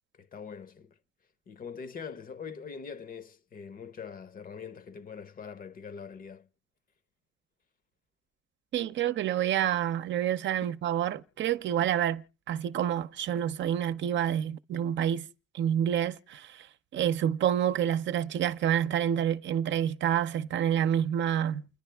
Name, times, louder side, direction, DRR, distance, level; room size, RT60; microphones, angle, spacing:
voice 1, 0.1-0.9 1.5-6.5, left 6 dB, 45° left, 0.8 m, -43 dB
voice 2, 8.7-15.2 15.5-16.7 16.9-21.7, right 10 dB, 65° right, 0.7 m, -28 dB
29.5 x 10.0 x 3.4 m
cardioid pair, 90°, 20 cm